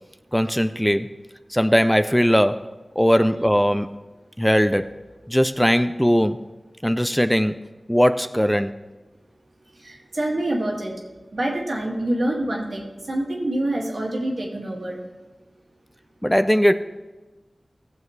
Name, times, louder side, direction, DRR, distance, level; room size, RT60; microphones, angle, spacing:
voice 1, 0.3-1.2 1.5-2.7 3.0-3.9 4.4-4.9 5.3-6.4 6.8-7.6 7.9-8.7 16.2-16.7, equal, 5° left, 11 dB, 0.4 m, -19 dB
voice 2, 9.8-10.9 11.3-15.0, right 1 dB, 75° right, -1 dB, 2.0 m, -26 dB
17.0 x 7.3 x 3.2 m, 1.2 s
wide cardioid pair, 50°, 0 cm